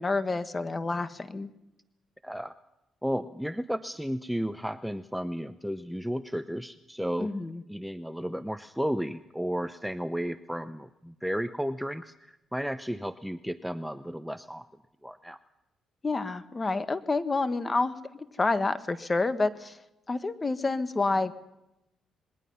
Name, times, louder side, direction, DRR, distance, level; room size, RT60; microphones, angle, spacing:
voice 1, 0.0-1.5 7.2-7.6 16.0-17.9 18.4-19.8 20.1-21.3, left 3 dB, 25° left, 11 dB, 1.6 m, -28 dB
voice 2, 2.2-2.6 3.0-7.3 7.7-14.6 15.0-15.4, equal, ahead, 11 dB, 0.7 m, -33 dB
27.0 x 21.5 x 5.6 m, 0.89 s
cardioid pair, 90°, 0 cm